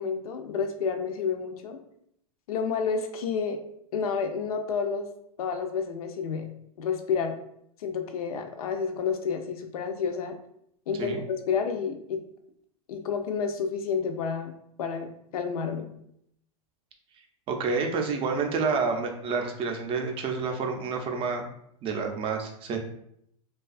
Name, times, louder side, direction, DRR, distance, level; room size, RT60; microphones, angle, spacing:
voice 1, 0.0-1.8 2.5-3.6 3.9-5.1 5.4-6.5 6.8-7.3 7.8-10.3 10.9-12.2 12.9-14.5 14.8-15.9, left 6 dB, 80° left, 6 dB, 0.4 m, -30 dB
voice 2, 17.5-21.5 21.8-22.8, right 4 dB, 30° right, 3 dB, 0.4 m, -29 dB
2.4 x 2.3 x 2.4 m, 0.72 s
hypercardioid pair, 105°, 18 cm